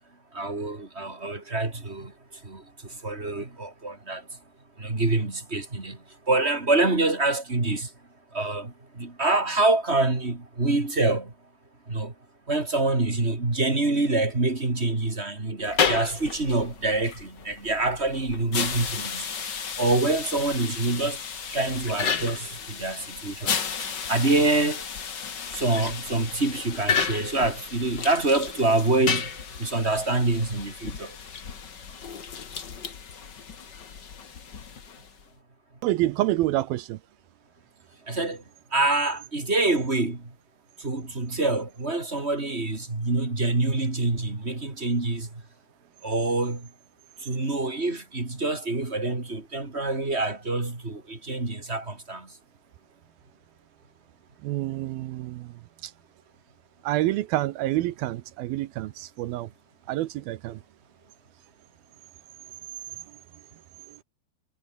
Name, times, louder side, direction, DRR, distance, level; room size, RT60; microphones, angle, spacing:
voice 1, 0.3-2.1 2.4-2.6 3.0-4.2 4.8-6.0 6.3-7.9 8.3-11.3 11.9-12.1 12.5-19.3 19.8-21.2 21.5-24.8 25.5-29.3 29.6-31.1 38.1-38.4 38.7-40.3 40.8-45.3 46.0-46.7 47.2-52.3, right 2 dB, 15° right, 3.2 m, -26 dB
sound 1, 15.6-35.2, left 6 dB, 45° left, 1.5 m, -33 dB
voice 2, 35.8-37.0 54.4-55.9 56.8-59.5 59.9-60.6 63.9-64.0, right 15 dB, 75° right, 2.5 m, -28 dB
omnidirectional pair, 4.8 m